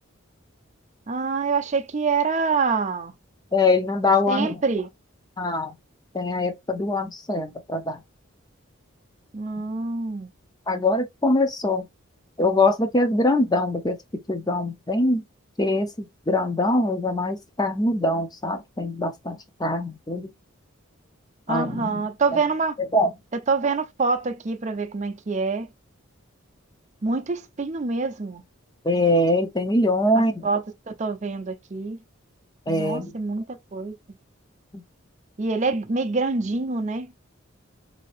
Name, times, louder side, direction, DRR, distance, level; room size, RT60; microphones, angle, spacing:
voice 1, 1.1-3.1 4.3-4.9 9.3-10.3 21.5-22.8 23.5-25.7 27.0-28.4 30.1-32.0 32.7-33.9 35.4-37.1, right 4 dB, 35° right, 0.5 m, -26 dB
voice 2, 3.5-4.6 5.4-5.7 6.1-8.0 10.7-11.9 12.4-15.2 15.6-20.3 21.5-22.0 22.3-22.4 22.9-23.1 28.8-30.5 32.7-33.1 34.7-34.8, left 2 dB, 20° left, 0.6 m, -23 dB
3.9 x 2.7 x 3.2 m
head